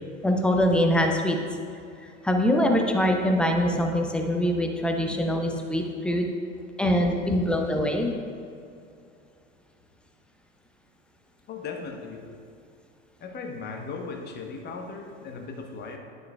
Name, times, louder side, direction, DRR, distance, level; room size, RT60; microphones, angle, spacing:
voice 1, 0.2-1.4 2.0-6.2 6.8-8.1, equal, 5° left, 3 dB, 0.5 m, -23 dB
voice 2, 11.5-12.2 13.2-16.0, left 4 dB, 25° left, 2 dB, 1.0 m, -37 dB
11.0 x 6.6 x 2.2 m, 2.5 s
figure-of-eight pair, 85°, 38 cm